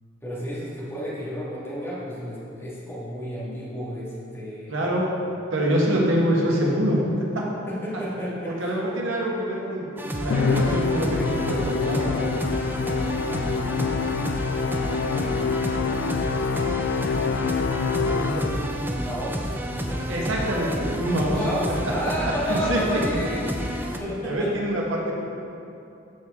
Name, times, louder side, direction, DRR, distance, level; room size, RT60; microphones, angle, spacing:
voice 1, 0.2-4.9 7.7-8.7 17.8-18.1 18.9-20.3 21.2-24.5, equal, 15° left, -9 dB, 2.0 m, -32 dB
voice 2, 4.7-5.1 5.5-7.0 7.3-7.4 8.5-9.8 10.1-12.1 17.8-18.5 20.1-21.3 22.5-22.8 24.2-25.1, equal, 85° right, -3 dB, 1.5 m, -25 dB
sound 1, 10.0-24.0, equal, 10° right, 0.5 m, -30 dB
Musical instrument, 10.3-18.9, left 5 dB, 60° left, 0.3 m, -26 dB
12.5 x 4.7 x 3.7 m, 2.7 s
head